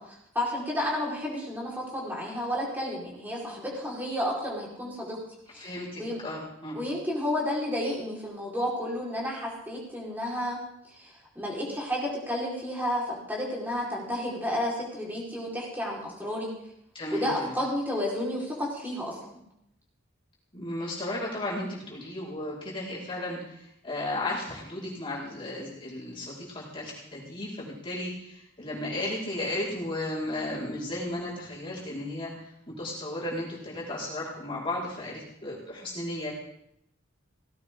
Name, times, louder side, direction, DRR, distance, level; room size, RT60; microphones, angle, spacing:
voice 1, 0.0-5.2 5.5-5.7 6.0-6.2 6.7-10.6 10.9-16.5 17.1-19.2, left 1 dB, 10° right, -4 dB, 4.5 m, -31 dB
voice 2, 5.5-6.8 16.9-17.6 20.5-36.3, left 1 dB, 25° left, -6 dB, 4.9 m, -34 dB
18.0 x 16.5 x 3.8 m, 0.76 s
head